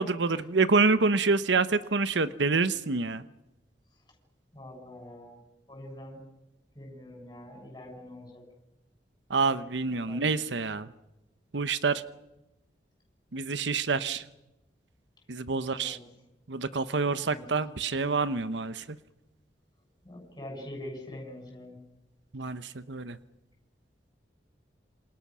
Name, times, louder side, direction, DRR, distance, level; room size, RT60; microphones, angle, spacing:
voice 1, 0.0-3.2 9.3-10.9 11.5-12.0 13.3-14.2 15.3-16.0 16.5-18.8 22.3-23.2, right 4 dB, 85° right, 14 dB, 1.0 m, -27 dB
voice 2, 4.5-5.4 5.7-6.2 6.8-8.4 10.1-10.3 15.5-16.1 17.0-17.5 20.0-21.8, left 1 dB, 20° left, 1 dB, 7.3 m, -44 dB
27.5 x 27.0 x 6.2 m, 0.95 s
head